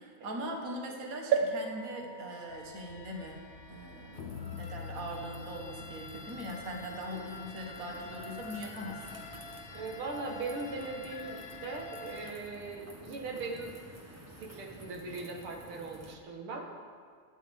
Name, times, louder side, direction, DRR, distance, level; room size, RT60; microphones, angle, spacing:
voice 1, 0.0-3.4 3.7-9.3, right 1 dB, 45° right, 1 dB, 1.9 m, -41 dB
sound 1, 1.3-5.0 5.6-5.7 5.9-6.0, right 6 dB, 65° right, 1.8 m, -35 dB
sound 2, 2.5-12.3, left 5 dB, 65° left, 0.7 m, -46 dB
sound 3, 4.1-16.2, equal, 25° right, 0.3 m, -51 dB
voice 2, 9.7-13.8 14.4-16.8, right 3 dB, 90° right, 1 dB, 2.5 m, -40 dB
22.5 x 10.5 x 3.7 m, 2.1 s
omnidirectional pair, 2.3 m